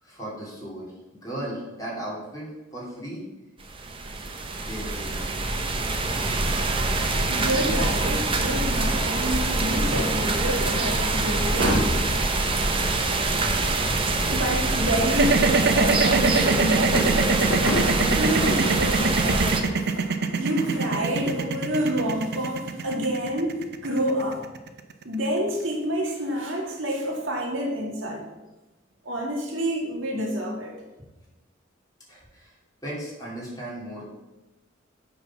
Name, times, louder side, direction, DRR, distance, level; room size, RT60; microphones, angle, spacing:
voice 1, 0.0-3.2 4.5-5.3 32.1-32.5 32.8-34.1, right 1 dB, 20° left, -6 dB, 3.0 m, -36 dB
sound 1, 3.6-19.6, right 2 dB, 30° right, 0.8 m, -25 dB
voice 2, 7.3-11.8 13.6-24.5 25.0-28.3 29.1-30.8, equal, 80° right, -1 dB, 1.8 m, -28 dB
sound 2, 15.1-25.3, right 4 dB, 60° right, 0.6 m, -24 dB
Thunder, 16.9-22.6, left 3 dB, 75° left, 0.8 m, -33 dB
8.5 x 4.2 x 6.0 m, 1.1 s
head